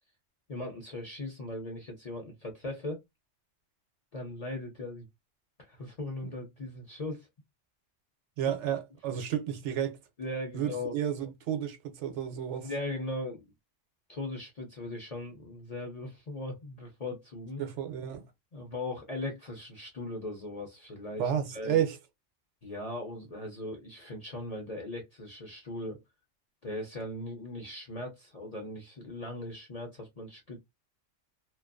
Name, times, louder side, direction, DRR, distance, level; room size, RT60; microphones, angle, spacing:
voice 1, 0.5-3.0 4.1-5.1 5.6-7.3 10.2-11.0 12.6-13.5 14.1-17.6 18.5-21.8 22.6-26.0 26.6-30.6, left 1 dB, 40° left, 0.6 m, -39 dB
voice 2, 8.4-10.0 10.5-12.7 17.6-18.2 21.2-22.0, right 9 dB, 70° right, 0.9 m, -31 dB
2.5 x 2.2 x 2.4 m
omnidirectional pair, 1.3 m